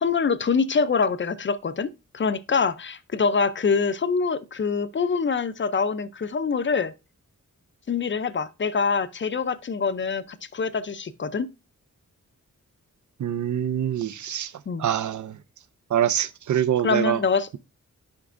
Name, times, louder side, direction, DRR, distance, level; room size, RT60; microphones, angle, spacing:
voice 1, 0.0-6.9 7.9-11.5 14.7-14.8 16.8-17.6, left 5 dB, 40° left, 0.4 m, -25 dB
voice 2, 13.2-14.5 14.8-15.4 15.9-17.2, right 10 dB, 65° right, 0.5 m, -25 dB
10.0 x 5.2 x 2.5 m
wide cardioid pair, 140°, 31 cm